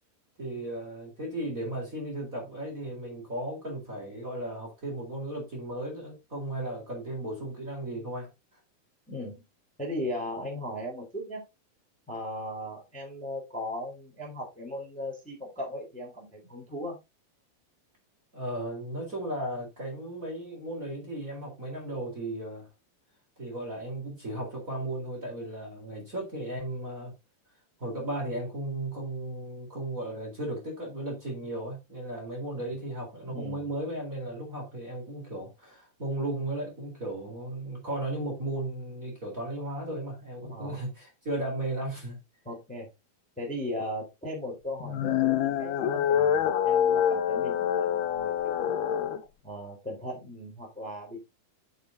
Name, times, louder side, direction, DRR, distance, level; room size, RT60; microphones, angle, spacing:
voice 1, 0.4-8.3 18.3-22.7 23.4-27.1 27.8-42.2, right 1 dB, 20° right, 4.0 m, -35 dB
voice 2, 9.1-9.4 9.8-11.4 12.1-17.0 32.5-32.6 33.3-33.7 40.4-40.8 42.4-42.9 43.4-49.0 49.4-51.2, left 1 dB, ahead, 3.5 m, -37 dB
sound 1, 44.8-49.2, left 9 dB, 85° left, 2.9 m, -26 dB
8.2 x 7.3 x 3.9 m
omnidirectional pair, 4.3 m